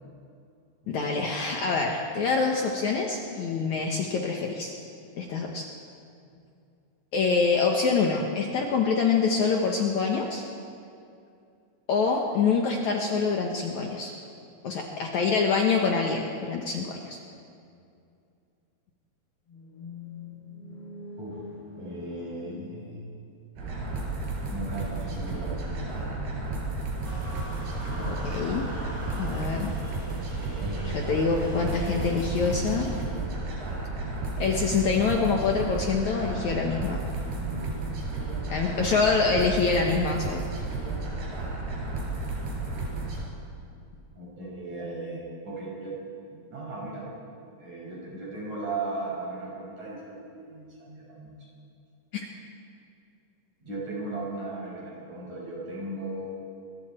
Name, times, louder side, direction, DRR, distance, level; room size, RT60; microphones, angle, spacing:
voice 1, 0.9-4.7 5.2-5.7 7.1-10.4 11.9-14.1 14.6-17.2 28.0-28.7 29.2-29.7 30.8-32.9 34.4-37.0 38.5-40.4, left 5 dB, 60° left, 0 dB, 2.3 m, -25 dB
sound 1, 19.5-23.6, left 4 dB, 85° left, 7.5 m, -44 dB
voice 2, 21.8-23.2 24.5-26.2 37.3-37.8 44.2-47.1 47.6-51.3 53.6-56.3, right 2 dB, 45° right, -4 dB, 7.2 m, -37 dB
sound 2, 23.6-43.2, right 2 dB, 90° right, 6.1 m, -33 dB
sound 3, 27.0-33.0, right 1 dB, 20° right, 0.8 m, -38 dB
28.0 x 22.5 x 4.5 m, 2.5 s
omnidirectional pair, 4.5 m